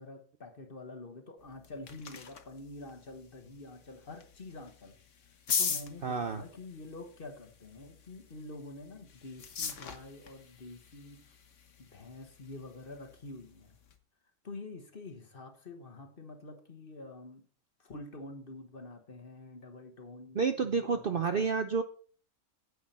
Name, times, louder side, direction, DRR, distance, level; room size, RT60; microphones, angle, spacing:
voice 1, 0.0-5.0 5.6-11.2 11.8-13.7 14.4-17.5 17.8-21.5, left 2 dB, 40° left, 5 dB, 1.4 m, -47 dB
sound 1, 1.4-14.0, left 6 dB, 55° left, 1.4 m, -42 dB
voice 2, 6.0-6.4 20.3-21.8, right 5 dB, 50° right, 7 dB, 0.7 m, -29 dB
9.4 x 8.4 x 4.2 m, 0.43 s
omnidirectional pair, 1.6 m